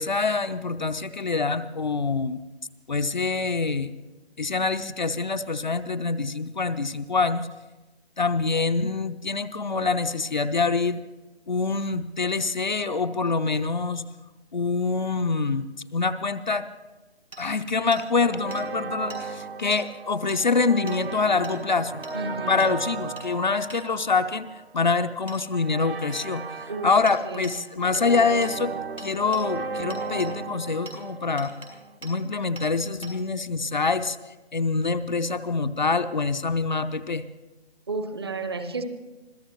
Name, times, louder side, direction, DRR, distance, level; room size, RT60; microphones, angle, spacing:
voice 1, 0.0-2.4 2.9-3.9 4.4-7.5 8.2-11.0 11.5-14.1 14.5-16.7 17.4-21.9 22.5-26.4 26.8-28.7 29.0-31.5 32.0-34.2 34.5-37.3, left 4 dB, 45° left, 9 dB, 0.5 m, -25 dB
Hammer, 17.3-17.4 17.9-18.0 18.5-18.6 19.1-19.2 19.7-19.8 20.3-20.4 20.9-21.0 21.4-21.6 22.0-22.2 22.6-22.7 23.2-23.3 23.7-23.8 25.3-25.4 27.1-27.2 27.4-27.6 27.9-28.1 28.4-28.5 29.0-29.4 29.9-30.3 30.9-31.0 31.4-31.7 32.0-32.1 32.6-32.7 33.0-33.1, right 1 dB, 80° right, 5.9 m, -42 dB
sound 1, 18.2-32.0, right 4 dB, 60° right, 1.0 m, -36 dB
voice 2, 22.1-22.6 26.7-26.9 27.2-27.5 37.9-38.8, right 3 dB, 25° right, 8 dB, 0.8 m, -31 dB
25.5 x 16.5 x 3.0 m, 1.1 s
figure-of-eight pair, 150°, 32 cm